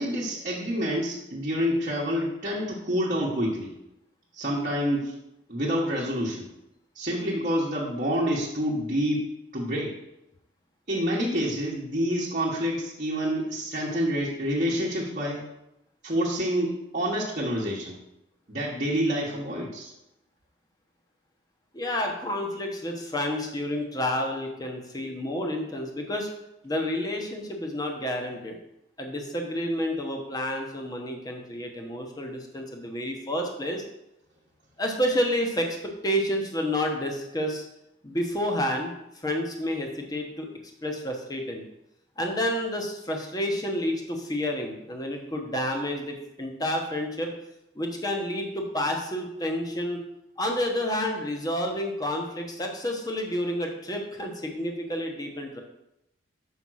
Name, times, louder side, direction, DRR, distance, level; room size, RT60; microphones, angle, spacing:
voice 1, 0.0-3.7 4.3-5.1 5.5-6.5 6.9-9.9 10.9-15.4 16.0-18.0 18.5-19.9, equal, 45° right, -5 dB, 1.2 m, -28 dB
voice 2, 21.7-26.3 26.6-28.6 29.0-33.8 34.8-37.6 38.0-40.5 40.8-41.6 42.2-47.3 47.7-50.0 50.4-55.6, left 1 dB, 20° left, 2 dB, 1.0 m, -30 dB
5.6 x 5.2 x 6.3 m, 0.87 s
head